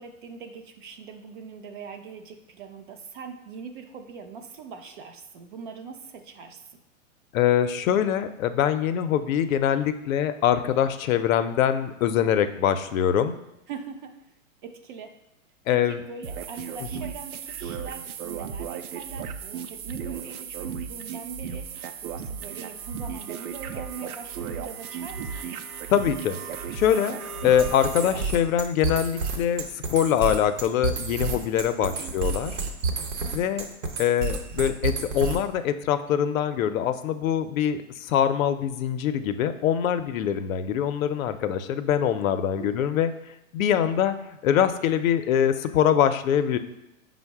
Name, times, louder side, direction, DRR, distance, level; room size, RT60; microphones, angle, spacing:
voice 1, 0.0-6.8 13.7-14.2 14.6-15.2 15.7-25.6 31.8-32.2 42.6-43.0, right 5 dB, 40° right, 5 dB, 0.4 m, -42 dB
voice 2, 7.3-13.4 15.7-16.0 25.9-26.4 26.7-29.6 29.9-32.5 33.3-33.7 34.0-43.1 43.5-44.1 44.4-46.6, left 9 dB, 70° left, 11 dB, 0.5 m, -23 dB
sound 1, 16.2-28.2, right 6 dB, 85° right, 0.6 m, -35 dB
sound 2, 27.6-35.6, right 4 dB, 60° right, 0.8 m, -30 dB
5.2 x 2.1 x 4.6 m, 0.89 s
hypercardioid pair, 140°, 42 cm